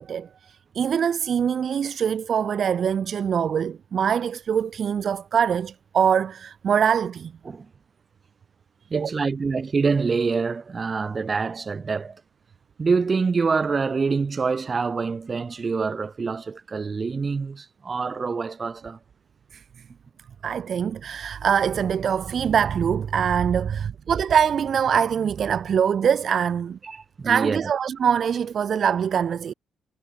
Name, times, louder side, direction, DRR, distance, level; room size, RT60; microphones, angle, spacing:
voice 1, 0.0-7.3 8.9-9.1 19.5-19.6 20.4-26.8 27.2-29.5, right 8 dB, 55° right, 0.5 m, -23 dB
voice 2, 8.9-12.2 12.8-19.0 26.8-27.7, right 4 dB, 35° right, 2.8 m, -26 dB
cardioid pair, 90°, 0 cm